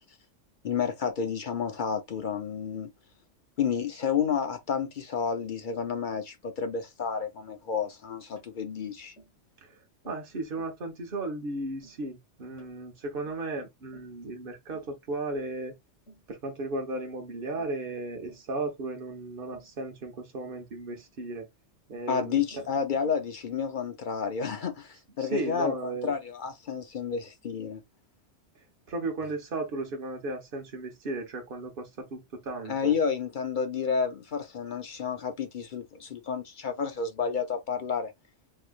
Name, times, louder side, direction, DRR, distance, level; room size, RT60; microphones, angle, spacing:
voice 1, 0.6-2.9 3.6-9.1 22.1-27.8 32.7-38.1, left 6 dB, 50° left, 0.6 m, -30 dB
Tap, 8.4-8.5 9.2-9.4 10.0-10.3 10.6-10.8 11.2-11.4 11.8-12.0 12.6-12.8 13.3-13.5 13.9-14.2 14.7-15.0 15.4-15.6 16.1-16.3 16.7-16.9 17.6-17.8 18.3-18.5 19.5-19.8 20.9-21.1 21.9-22.1 22.5-22.7 23.1-23.3, right 2 dB, 75° left, 1.7 m, -55 dB
voice 2, 10.0-15.7 16.3-21.5 21.9-22.6 25.2-26.1 28.9-33.0, right 2 dB, 50° right, 1.2 m, -35 dB
3.7 x 3.1 x 2.3 m
omnidirectional pair, 1.3 m